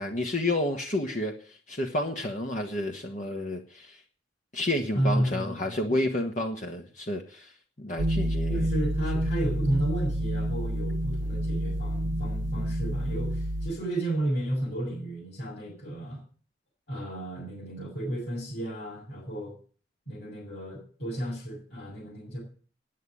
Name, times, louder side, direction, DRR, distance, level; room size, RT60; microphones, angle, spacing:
voice 1, 0.0-4.0 4.5-7.5 7.8-8.6, left 1 dB, 45° left, 2 dB, 1.5 m, -30 dB
voice 2, 4.9-6.0 8.5-16.2 16.9-19.5 20.1-22.4, right 1 dB, 60° left, -6 dB, 6.9 m, -32 dB
sound 1, 8.0-13.7, right 1 dB, 85° right, 0.8 m, -29 dB
9.4 x 9.3 x 10.0 m, 0.43 s
head